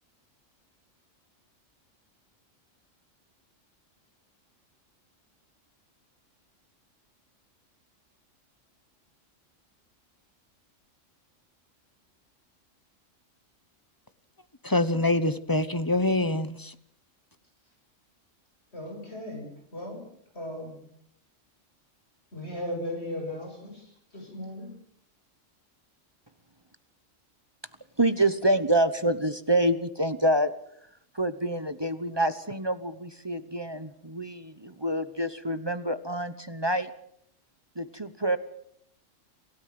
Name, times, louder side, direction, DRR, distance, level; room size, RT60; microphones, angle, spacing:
voice 1, 14.6-16.7, left 2 dB, 20° left, 13 dB, 1.0 m, -25 dB
voice 2, 18.7-20.0 20.3-20.8 22.3-24.7, left 1 dB, 55° left, 2 dB, 7.7 m, -37 dB
voice 3, 28.0-30.5 31.1-36.9 37.8-38.4, right 1 dB, 20° right, 11 dB, 1.0 m, -27 dB
27.5 x 17.0 x 7.7 m, 0.70 s
omnidirectional pair, 1.3 m